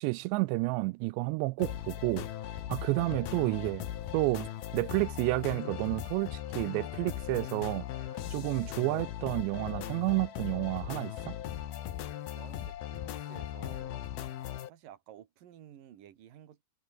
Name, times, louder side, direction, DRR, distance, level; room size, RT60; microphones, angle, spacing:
voice 1, 0.0-2.3 2.7-3.8 4.1-7.9 8.3-11.4, right 24 dB, 90° right, 2.8 m, -30 dB
sound 1, 1.6-14.7, left 11 dB, 65° left, 3.4 m, -39 dB
voice 2, 12.3-14.1 14.7-16.6, right 11 dB, 55° right, 3.4 m, -53 dB
omnidirectional pair, 4.9 m